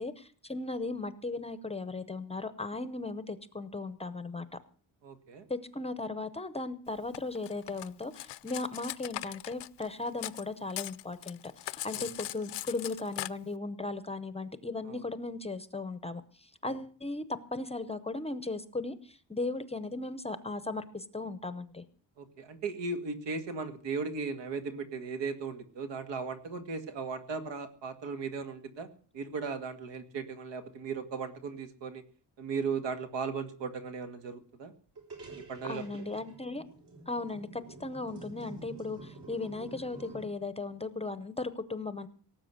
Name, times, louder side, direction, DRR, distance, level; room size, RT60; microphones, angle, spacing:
voice 1, 0.0-4.5 5.5-11.4 11.6-21.8 35.6-36.6 37.1-42.1, left 3 dB, 15° left, 13 dB, 0.7 m, -37 dB
voice 2, 5.0-5.5 11.9-12.1 14.9-15.0 16.7-16.8 22.2-28.9 29.1-32.0 32.4-34.7 35.5-36.0, right 4 dB, 80° right, 8 dB, 2.2 m, -37 dB
Cutlery silverware, 7.1-10.4 10.7-13.3, left 15 dB, 75° left, 0.6 m, -40 dB
sound 1, 35.0-40.3, right 2 dB, 65° right, 5.3 m, -49 dB
18.5 x 7.6 x 7.9 m, 0.43 s
wide cardioid pair, 180°, 43 cm